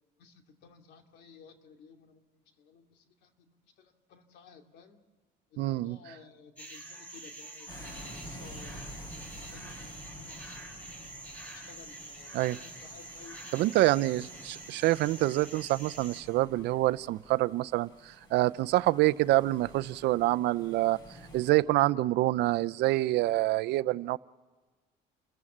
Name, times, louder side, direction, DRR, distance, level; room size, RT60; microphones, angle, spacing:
voice 1, 0.2-5.0 5.5-9.1 9.5-14.2, left 5 dB, 80° left, 2.7 m, -56 dB
voice 2, 5.6-6.0 12.3-12.6 13.5-21.0 21.3-24.2, right 17 dB, 80° right, 0.6 m, -26 dB
sound 1, 6.6-16.2, right 2 dB, 10° left, 5.2 m, -46 dB
sound 2, 7.7-21.5, equal, 25° left, 7.8 m, -50 dB
30.0 x 15.0 x 7.3 m
cardioid pair, 110°, 17 cm